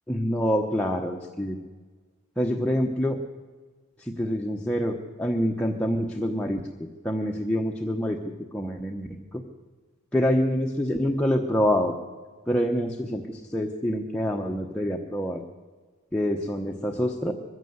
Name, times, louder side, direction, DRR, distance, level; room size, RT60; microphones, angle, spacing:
voice 1, 0.1-1.6 2.4-3.2 4.0-6.6 7.0-8.2 8.5-9.4 10.1-12.0 12.5-15.4 16.1-17.3, equal, 5° left, 0 dB, 1.0 m, -26 dB
22.0 x 15.0 x 8.0 m, 1.4 s
head